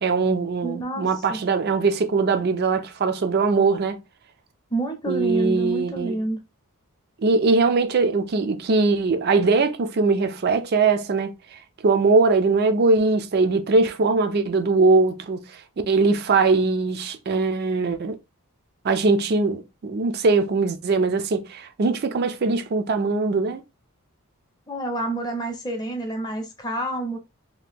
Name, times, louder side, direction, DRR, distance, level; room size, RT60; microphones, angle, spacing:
voice 1, 0.0-4.0 5.1-6.2 7.2-11.3 11.8-15.4 15.9-18.2 18.8-23.6, right 3 dB, 45° right, 0.4 m, -21 dB
voice 2, 0.6-1.4 4.7-6.4 24.7-27.2, right 2 dB, 20° left, 0.6 m, -28 dB
2.8 x 2.2 x 3.3 m
head